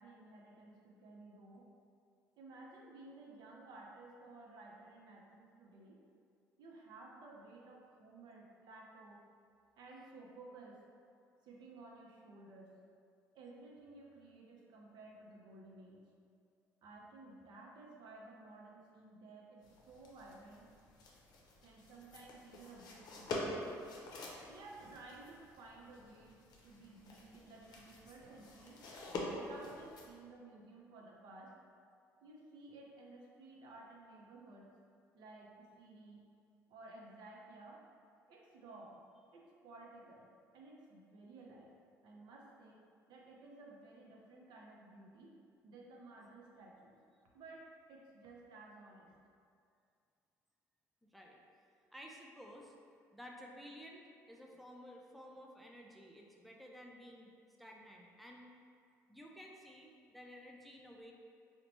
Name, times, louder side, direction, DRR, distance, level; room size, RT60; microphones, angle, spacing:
voice 1, 0.0-1.7 2.4-6.0 6.6-9.2 9.8-10.8 11.4-12.7 13.3-16.0 16.8-20.7 21.6-23.7 24.5-28.8 29.3-31.5 32.2-34.7 35.1-36.2 36.7-37.8 38.3-39.0 39.3-40.3 40.5-41.7 42.0-42.8 43.1-45.4 45.6-47.0 47.3-49.1, right 2 dB, 65° right, -2 dB, 0.6 m, -55 dB
sound 1, 19.6-30.1, left 2 dB, 55° left, 0.6 m, -47 dB
voice 2, 51.0-51.4 51.9-52.7 53.1-57.3 57.6-58.5 59.1-61.1, equal, ahead, -1 dB, 0.4 m, -54 dB
3.8 x 2.1 x 3.0 m, 2.3 s
hypercardioid pair, 60°, 8 cm